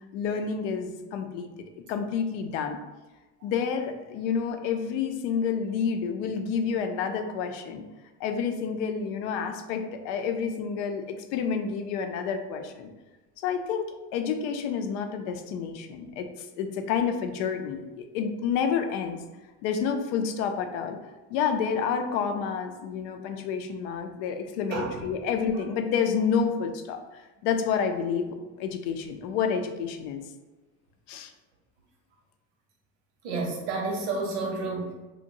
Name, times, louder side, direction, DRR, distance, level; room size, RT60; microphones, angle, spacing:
voice 1, 0.1-1.5 1.9-2.8 3.4-7.8 8.2-12.9 13.4-19.2 19.6-21.0 21.3-30.2 31.1-31.3, left 6 dB, 80° left, 6 dB, 0.5 m, -29 dB
voice 2, 33.2-34.9, right 3 dB, 90° right, 0 dB, 0.8 m, -30 dB
2.7 x 2.1 x 2.7 m, 1.1 s
supercardioid pair, 120°, 36 cm